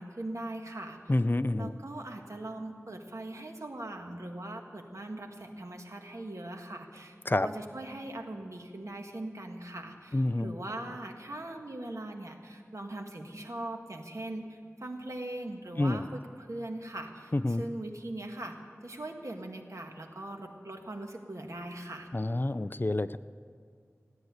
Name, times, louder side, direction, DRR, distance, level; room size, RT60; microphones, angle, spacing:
voice 1, 0.0-1.0 1.6-18.6 18.8-22.1, right 1 dB, 80° right, 3 dB, 1.6 m, -40 dB
voice 2, 1.1-1.7 7.3-7.5 10.1-10.5 15.8-16.1 17.3-17.6 22.1-23.2, left 2 dB, 40° left, 13 dB, 0.5 m, -28 dB
16.0 x 10.5 x 8.1 m, 2.2 s
wide cardioid pair, 45°, 5 cm